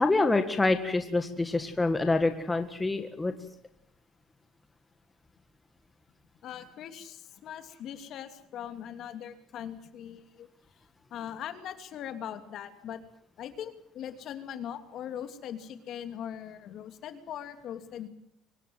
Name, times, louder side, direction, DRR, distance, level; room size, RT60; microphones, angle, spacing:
voice 1, 0.0-3.3, left 2 dB, 15° left, 7 dB, 1.7 m, -26 dB
voice 2, 6.4-10.5 11.1-13.0 13.4-18.1, left 9 dB, 55° left, 8 dB, 2.8 m, -40 dB
24.0 x 18.5 x 8.0 m, 0.72 s
cardioid pair, 130°, 0 cm